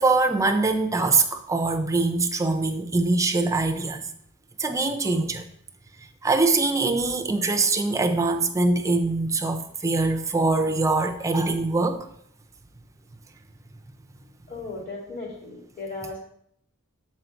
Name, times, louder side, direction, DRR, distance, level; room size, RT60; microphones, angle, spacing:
voice 1, 0.0-4.1 4.6-5.4 6.2-12.1, right 3 dB, 15° right, 5 dB, 0.5 m, -23 dB
voice 2, 14.5-16.2, left 3 dB, 45° left, -3 dB, 2.3 m, -36 dB
7.6 x 3.9 x 4.5 m, 0.70 s
head